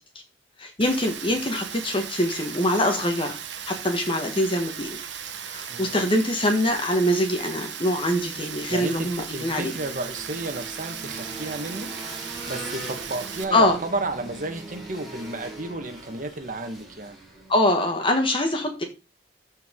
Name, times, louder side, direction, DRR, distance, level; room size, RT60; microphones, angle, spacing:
voice 1, 0.6-3.4 3.7-5.0 5.4-9.7 13.5-13.8 17.5-18.8, left 1 dB, 30° left, 4 dB, 1.5 m, -24 dB
Rain, 0.8-13.4, right 8 dB, 85° right, 1.3 m, -37 dB
voice 2, 5.7-6.0 8.7-11.9 12.5-17.2, right 2 dB, 50° right, 7 dB, 1.5 m, -32 dB
sound 1, 7.8-17.7, right 2 dB, ahead, 3.6 m, -41 dB
14.0 x 4.8 x 3.8 m, 0.29 s
head